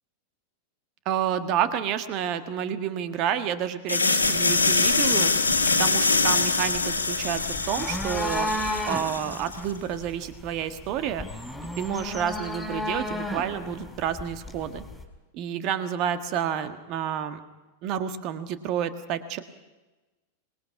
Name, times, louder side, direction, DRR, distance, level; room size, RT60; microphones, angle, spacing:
voice 1, 1.0-5.3 5.8-7.4 7.7-8.5 8.9-11.3 11.8-14.8 15.3-17.4 17.8-19.4, right 9 dB, 40° right, 10 dB, 1.7 m, -29 dB
sound 1, 3.9-9.6, left 3 dB, 80° left, 1.9 m, -24 dB
sound 2, 4.2-15.0, left 1 dB, 5° left, 4.3 m, -35 dB
25.5 x 21.0 x 5.8 m, 1.1 s
figure-of-eight pair, 90°, 0 cm